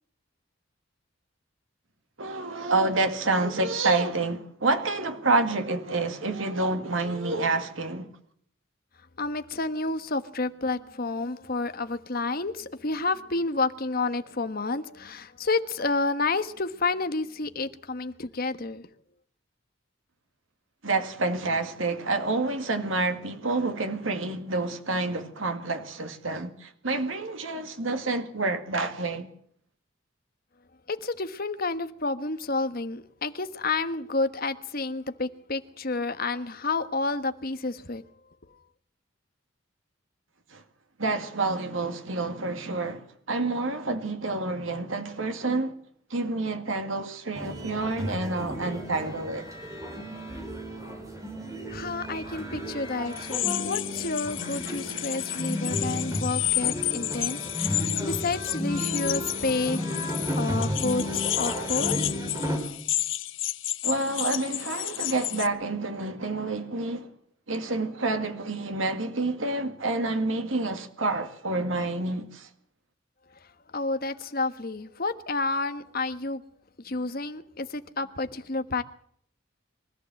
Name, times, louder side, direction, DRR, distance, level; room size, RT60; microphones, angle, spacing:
voice 1, 2.2-8.1 20.8-29.3 40.5-40.6 41.0-45.7 46.1-49.5 63.8-67.1 67.5-72.5, right 3 dB, 80° right, 2.1 m, -28 dB
voice 2, 9.2-18.9 30.9-38.0 51.7-59.8 60.3-62.1 73.7-76.4 76.8-78.8, left 3 dB, 50° left, 1.3 m, -30 dB
sound 1, 47.3-62.6, left 1 dB, 15° right, 5.4 m, -33 dB
sound 2, 53.1-65.5, left 14 dB, 75° left, 0.9 m, -31 dB
24.0 x 14.5 x 7.7 m
head